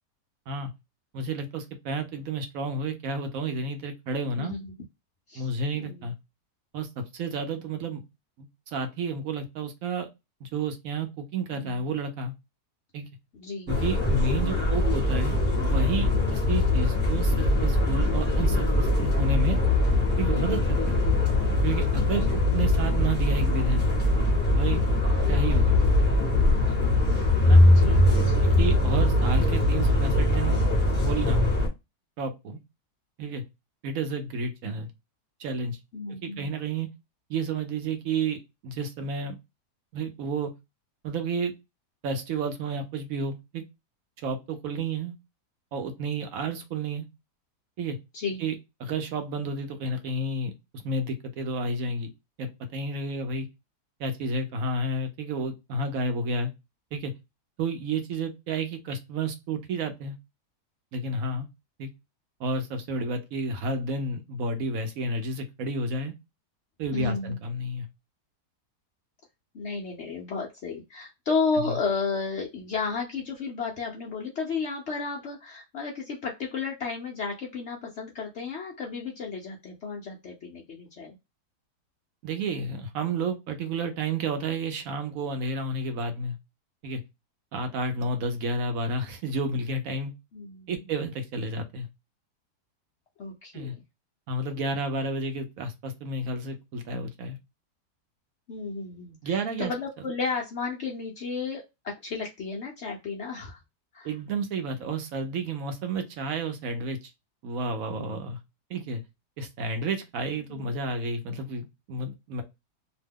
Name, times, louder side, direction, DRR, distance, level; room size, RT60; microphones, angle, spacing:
voice 1, 1.1-4.6 5.3-6.1 6.7-8.0 8.4-10.1 10.4-12.3 12.9-13.1 13.7-19.6 20.2-21.0 21.6-23.9 24.5-24.8 25.3-25.8 27.5-27.6 28.6-30.6 31.0-31.5 32.2-32.6 33.2-33.4 33.8-34.9 35.4-35.8 36.2-36.9 37.3-39.3 39.9-40.5 41.0-41.5 42.0-43.6 44.2-45.2 45.7-47.1 47.8-48.0 48.4-48.5 48.8-52.1 52.4-53.5 54.0-56.5 56.9-57.1 57.6-60.1 60.9-61.5 61.8-61.9 62.4-66.1 66.8-67.9 71.6-71.8 82.2-86.4 86.8-87.0 87.5-90.1 90.7-91.9 93.5-93.7 94.3-97.4 99.2-99.7 104.0-107.1 107.4-108.4 108.7-109.0 109.4-112.4, right 2 dB, 65° right, 7 dB, 0.9 m, -31 dB
voice 2, 4.4-4.7 5.3-5.5 5.7-6.1 11.5-11.8 13.3-13.7 16.2-16.3 20.3-20.6 22.1-22.3 24.7-24.9 27.6-28.5 35.9-36.5 48.1-48.4 66.9-67.4 69.5-81.2 90.3-90.7 93.2-93.8 98.5-103.6 103.9-104.1 107.9-108.2 110.5-110.7, left 4 dB, 65° left, 0 dB, 0.7 m, -33 dB
sound 1, 13.7-31.7, left 1 dB, 5° left, 0.9 m, -22 dB
2.8 x 2.1 x 3.4 m, 0.23 s
omnidirectional pair, 1.7 m